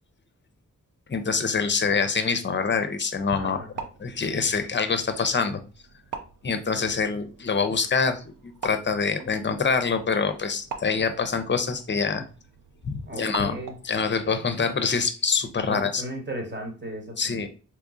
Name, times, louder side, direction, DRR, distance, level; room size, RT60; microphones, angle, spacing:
voice 1, 1.1-3.6 4.0-5.6 6.4-12.2 12.8-13.5 13.8-16.0 17.2-17.5, left 5 dB, 35° left, 9 dB, 0.6 m, -25 dB
voice 2, 3.4-3.7 13.1-13.7 15.7-17.5, right 1 dB, 30° right, 2 dB, 1.3 m, -36 dB
sound 1, 3.5-14.0, right 5 dB, 70° right, 0.6 m, -44 dB
3.5 x 3.0 x 2.5 m, 0.36 s
cardioid pair, 45°, 33 cm